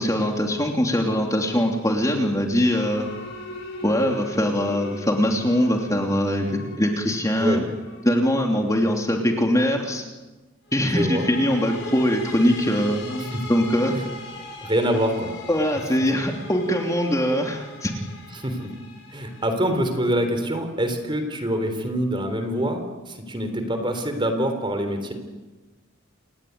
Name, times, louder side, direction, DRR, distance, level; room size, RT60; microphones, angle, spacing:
voice 1, 0.0-3.1 3.8-7.6 8.0-10.0 10.7-13.9 15.5-17.9, equal, 15° left, 2 dB, 3.0 m, -22 dB
sound 1, 2.7-9.2 10.7-20.6, left 2 dB, 55° left, 7.8 m, -40 dB
voice 2, 10.9-11.3 13.3-13.4 14.6-15.3 18.4-18.7 19.1-25.1, equal, 25° right, 7 dB, 3.6 m, -25 dB
28.5 x 19.0 x 9.5 m, 1.2 s
head